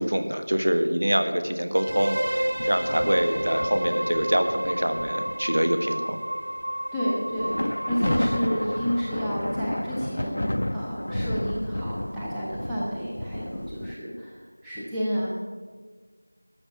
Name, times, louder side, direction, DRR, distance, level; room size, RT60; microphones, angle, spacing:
voice 1, 0.0-6.2, equal, 65° right, 7 dB, 1.4 m, -25 dB
sound 1, 1.7-9.5, right 1 dB, 50° right, 0.9 m, -31 dB
sound 2, 1.9-5.8 6.4-6.6 7.3-13.9, left 1 dB, 50° left, 0.4 m, -32 dB
voice 2, 6.9-15.3, equal, ahead, -10 dB, 0.5 m, -30 dB
13.0 x 6.5 x 9.1 m, 1.5 s
figure-of-eight pair, 180°, 0 cm